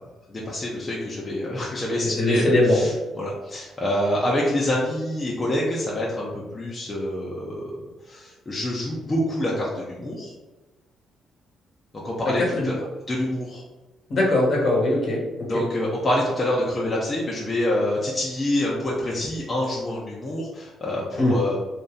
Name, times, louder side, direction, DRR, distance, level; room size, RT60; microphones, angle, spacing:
voice 1, 0.3-7.8 8.1-10.3 11.9-12.7 13.1-13.6 15.5-21.6, left 1 dB, 30° left, -5 dB, 0.8 m, -26 dB
voice 2, 2.0-2.8 12.6-12.7 14.1-15.2 15.5-15.6 21.2-21.3, left 1 dB, 55° left, -2 dB, 1.4 m, -20 dB
3.0 x 2.8 x 3.7 m, 1.1 s
cardioid pair, 90°, 0 cm